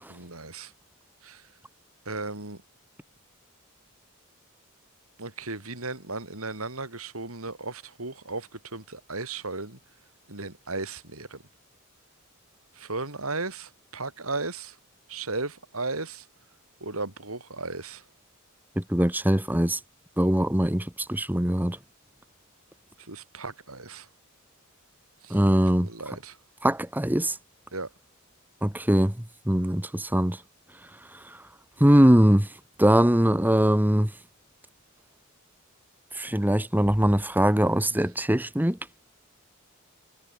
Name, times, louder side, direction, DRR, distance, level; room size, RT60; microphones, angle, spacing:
voice 1, 0.1-0.7 1.2-1.4 2.1-2.6 5.2-9.8 10.3-11.4 12.8-14.7 15.1-16.2 16.8-18.0 23.1-24.1 25.2-25.4 25.8-26.4 27.7-27.9, right 3 dB, 80° right, 5.3 m, -35 dB
voice 2, 18.8-19.8 20.2-21.8 25.3-25.9 26.6-27.3 28.6-29.1 29.5-30.4 31.8-32.5 32.8-34.1 36.2-38.8, equal, 10° right, 1.5 m, -21 dB
head